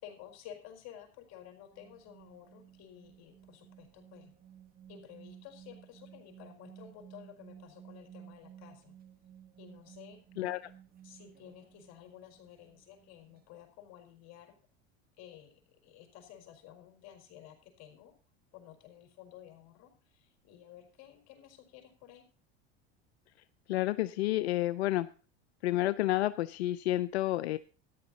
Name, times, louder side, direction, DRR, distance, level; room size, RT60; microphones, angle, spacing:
voice 1, 0.0-4.3 4.9-8.9 9.6-10.2 11.0-14.6 15.2-18.1 18.5-22.2, left 10 dB, 55° left, 4 dB, 4.5 m, -53 dB
sound 1, 1.7-13.6, right 10 dB, 30° right, 1.4 m, -55 dB
voice 2, 10.4-10.7 23.7-25.1 25.6-27.6, left 15 dB, 90° left, 14 dB, 0.5 m, -30 dB
14.0 x 10.5 x 4.1 m, 0.39 s
hypercardioid pair, 95°, 31 cm